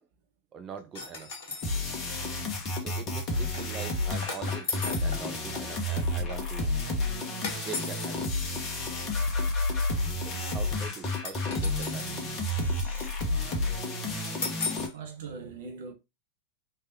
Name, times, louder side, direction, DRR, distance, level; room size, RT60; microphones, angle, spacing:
voice 1, 0.5-1.3 2.8-6.7 7.6-8.2 10.2-12.2 12.7-12.8, right 6 dB, 25° right, 0.5 m, -42 dB
sound 1, 0.8-0.9 1.1-2.5 2.7-2.8 3.2-3.9 4.1-5.2 5.4-6.0 6.3-6.9 8.7-9.0 10.2-10.3 10.5-10.6 11.1-11.2 11.4-13.1, equal, 90° right, 1.5 m, -48 dB
sound 2, 0.9-1.8 4.3-5.1 7.4-8.1 11.2-12.2 14.4-14.9, left 4 dB, 50° left, 1.1 m, -36 dB
sound 3, 1.6-14.9, left 2 dB, 30° left, 1.0 m, -30 dB
voice 2, 14.8-15.9, right 5 dB, 55° right, 0.8 m, -42 dB
3.3 x 3.2 x 2.7 m
figure-of-eight pair, 90°, 0 cm